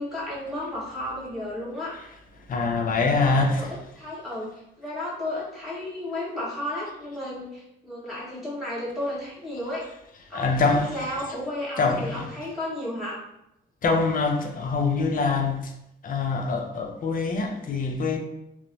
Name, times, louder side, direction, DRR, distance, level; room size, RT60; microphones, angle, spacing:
voice 1, 0.0-2.0 3.1-3.7 4.0-4.5 4.8-9.9 10.3-13.2, left 1 dB, ahead, 1.3 m, -33 dB
voice 2, 2.4-3.8 10.3-11.1 11.8-12.2 13.8-15.7 16.0-18.2, left 4 dB, 45° left, 0.5 m, -24 dB
2.9 x 2.0 x 2.6 m
cardioid pair, 90°, 20 cm